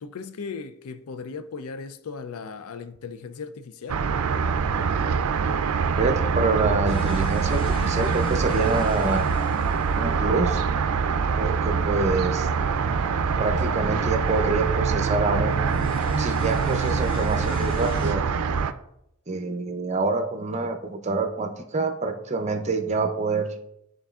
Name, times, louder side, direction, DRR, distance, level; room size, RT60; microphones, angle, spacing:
voice 1, 0.0-4.0, left 5 dB, 85° left, 0.4 m, -37 dB
sound 1, 3.9-18.7, right 5 dB, 85° right, 0.4 m, -24 dB
voice 2, 6.0-9.2 10.0-10.6 11.4-12.5 13.4-15.7 16.2-18.2 19.3-23.5, right 3 dB, 30° right, 0.6 m, -26 dB
sound 2, 6.9-18.1, left 1 dB, 25° left, 0.9 m, -38 dB
11.5 x 3.8 x 2.4 m
head